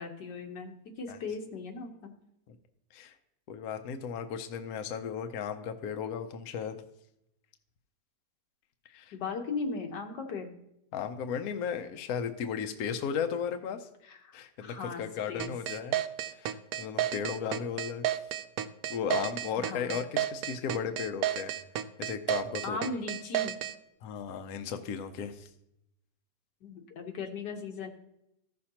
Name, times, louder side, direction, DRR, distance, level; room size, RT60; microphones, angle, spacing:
voice 1, 0.0-2.1 9.1-10.5 14.0-14.3 14.6-15.0 15.3-15.5 19.6-20.0 22.6-23.6 26.6-27.9, left 4 dB, 90° left, 3 dB, 1.7 m, -38 dB
voice 2, 3.5-6.8 8.9-9.1 10.9-13.9 14.3-16.0 16.3-18.0 18.9-21.5 22.0-22.8 24.0-25.5, left 7 dB, 70° left, 7 dB, 1.1 m, -35 dB
sound 1, 15.4-23.7, right 12 dB, 70° right, 1.0 m, -31 dB
14.5 x 6.4 x 2.8 m, 0.81 s
omnidirectional pair, 1.8 m